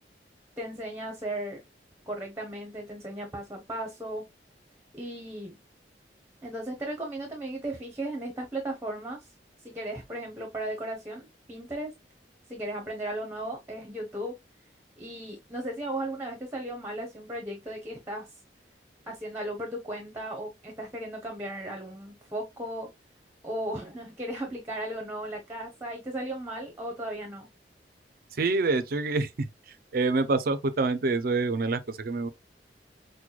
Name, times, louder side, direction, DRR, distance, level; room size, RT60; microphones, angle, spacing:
voice 1, 0.6-1.6 2.1-4.2 4.9-5.6 6.4-9.3 9.6-11.9 12.5-14.3 15.0-18.3 19.1-22.9 23.4-27.5, right 1 dB, 15° right, 0.9 m, -36 dB
voice 2, 28.3-29.3 29.7-32.3, right 3 dB, 55° right, 0.5 m, -26 dB
6.0 x 2.2 x 2.3 m
head